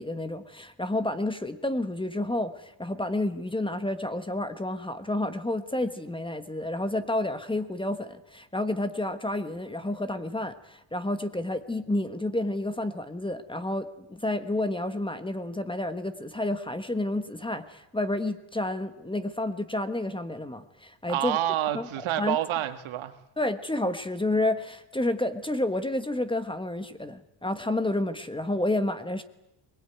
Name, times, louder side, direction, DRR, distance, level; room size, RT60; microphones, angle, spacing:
voice 1, 0.0-21.4 21.7-21.9 22.2-22.4 23.4-29.2, left 1 dB, 10° left, 10 dB, 1.3 m, -30 dB
voice 2, 21.1-23.1, right 12 dB, 70° right, 8 dB, 2.1 m, -28 dB
21.5 x 21.0 x 9.3 m, 0.87 s
cardioid pair, 120°, 50 cm